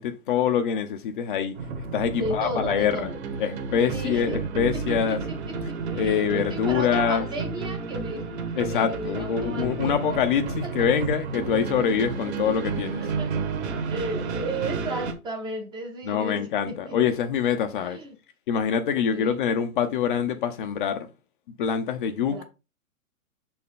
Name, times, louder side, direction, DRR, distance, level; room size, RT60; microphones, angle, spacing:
voice 1, 0.0-1.6 1.9-3.1 3.4-5.2 5.9-7.2 8.6-13.0 16.1-18.0 18.5-21.1 21.6-22.4, left 8 dB, 35° left, 0.6 m, -25 dB
sound 1, 1.5-15.1, right 4 dB, 50° right, 1.4 m, -31 dB
voice 2, 2.2-3.2 3.9-4.4 4.7-10.2 10.6-10.7 11.4-11.9 13.0-17.2 17.9-18.2 19.1-19.4 22.3-22.4, right 2 dB, 10° right, 0.7 m, -35 dB
6.1 x 4.3 x 3.8 m
hypercardioid pair, 125°, 43 cm